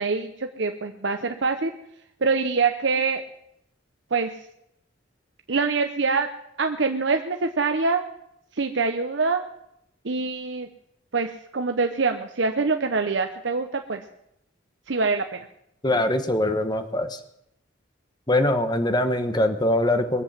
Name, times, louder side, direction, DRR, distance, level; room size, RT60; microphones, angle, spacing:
voice 1, 0.0-1.7 2.2-3.2 4.1-4.3 5.5-6.3 6.6-8.0 8.6-9.4 10.0-10.7 11.1-14.0 14.9-15.5, right 4 dB, 70° right, 5 dB, 0.8 m, -24 dB
voice 2, 15.8-17.2 18.3-20.2, left 1 dB, 20° left, 8 dB, 1.2 m, -22 dB
22.0 x 7.9 x 7.4 m, 0.78 s
head